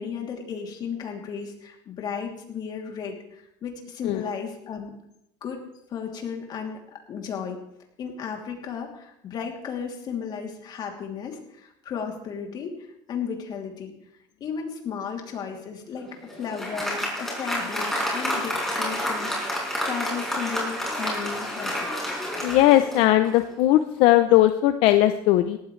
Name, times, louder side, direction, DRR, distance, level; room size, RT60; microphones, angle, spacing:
voice 1, 0.0-4.9 5.4-7.6 8.0-13.9 14.4-16.1 16.4-21.9, left 6 dB, 45° left, 2 dB, 2.9 m, -34 dB
Applause, 16.0-23.5, equal, 5° left, 5.5 m, -29 dB
voice 2, 22.4-25.6, left 14 dB, 75° left, 9 dB, 0.7 m, -19 dB
18.0 x 13.5 x 3.3 m, 0.77 s
cardioid pair, 120°, 10 cm